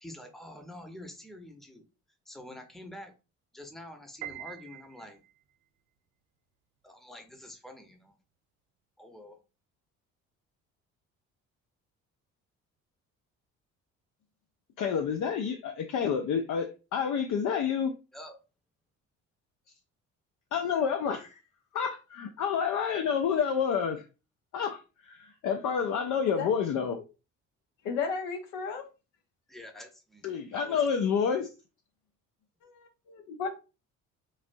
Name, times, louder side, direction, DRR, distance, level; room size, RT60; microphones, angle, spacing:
voice 1, 0.0-1.8 2.3-3.1 3.5-5.2 6.8-8.2 9.0-9.4 18.1-18.3 29.5-30.8, left 1 dB, ahead, 0.8 m, -47 dB
Piano, 4.2-5.5, right 12 dB, 75° right, 0.5 m, -43 dB
voice 2, 14.8-17.9 20.5-21.4 21.7-24.1 24.5-27.0 30.2-31.5, left 7 dB, 50° left, 0.5 m, -29 dB
voice 3, 27.8-28.8 32.6-33.5, left 5 dB, 75° left, 0.8 m, -34 dB
3.2 x 2.6 x 2.5 m
hypercardioid pair, 55°, 38 cm